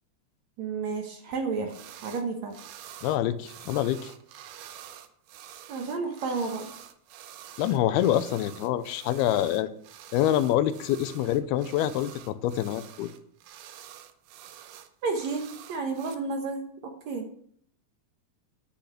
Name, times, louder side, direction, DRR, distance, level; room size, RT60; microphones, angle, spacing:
voice 1, 0.6-1.7 2.0-2.6 5.7-6.7 15.0-17.3, right 4 dB, 65° right, 4 dB, 1.8 m, -31 dB
sound 1, 1.7-2.2 2.5-16.2, right 11 dB, 80° right, 1.9 m, -47 dB
voice 2, 3.0-4.1 7.6-9.7 10.1-13.1, left 12 dB, 80° left, 13 dB, 2.4 m, -26 dB
10.0 x 6.2 x 8.3 m, 0.64 s
omnidirectional pair, 4.8 m